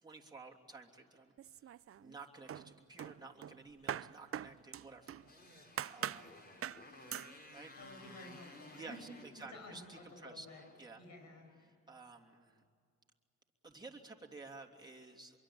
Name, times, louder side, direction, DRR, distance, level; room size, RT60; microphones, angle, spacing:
voice 1, 0.0-1.3 2.0-5.1 5.4-5.6 5.9-6.4 7.5-7.7 8.7-9.1 9.3-10.5 10.8-11.0 11.9-12.6 13.6-15.4, right 3 dB, 15° right, -1 dB, 3.1 m, -53 dB
sound 1, 1.4-2.2 2.5-5.3 5.8-6.3 6.6-6.8 7.1-7.3, right 10 dB, 50° right, 0.7 m, -43 dB
Motorcycle, 5.0-11.5, left 2 dB, 30° left, 5.1 m, -57 dB
voice 2, 7.8-10.6 11.0-11.7, left 1 dB, 65° left, 3 dB, 7.9 m, -53 dB
25.5 x 23.5 x 8.8 m, 2.2 s
cardioid pair, 90°, 30 cm